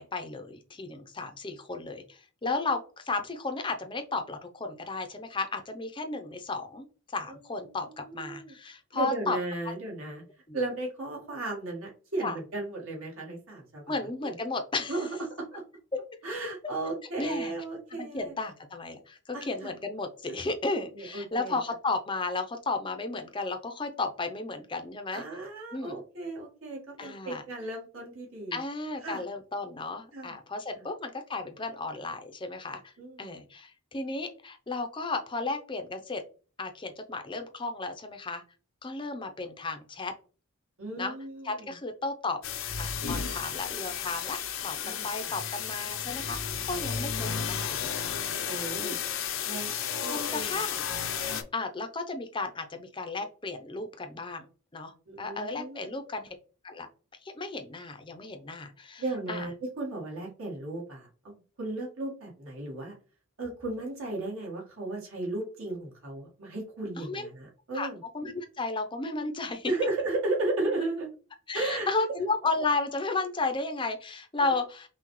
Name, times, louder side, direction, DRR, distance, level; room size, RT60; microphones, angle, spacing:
voice 1, 0.0-6.9 7.1-9.4 10.5-10.6 12.2-12.4 13.9-14.9 17.2-17.5 18.0-25.2 25.7-26.0 27.0-27.4 28.5-32.9 33.2-36.2 36.6-38.4 38.8-40.1 41.0-41.1 41.4-42.4 42.8-46.4 46.6-48.0 48.8-49.0 50.1-50.8 51.5-54.5 54.7-56.3 56.6-56.9 57.2-59.0 59.3-59.5 67.0-67.3 67.7-67.9 68.1-69.7 71.5-74.9, left 3 dB, 20° left, 6 dB, 0.5 m, -34 dB
voice 2, 7.7-8.5 8.9-10.2 10.5-14.0 14.2-14.3 14.9-15.1 15.4-15.6 16.2-18.3 19.3-19.7 20.3-20.4 20.7-21.6 25.1-28.6 29.0-29.2 30.1-30.4 30.7-30.8 33.0-33.3 40.8-41.7 44.8-45.0 48.4-49.0 49.4-49.7 50.0-50.6 55.1-55.9 59.0-63.0 63.4-68.0 69.6-71.1 71.5-71.9 74.4-74.5, right 2 dB, 70° right, -2 dB, 1.7 m, -35 dB
sound 1, 42.4-51.4, left 7 dB, 60° left, 0.6 m, -33 dB
5.8 x 2.3 x 3.1 m, 0.36 s
head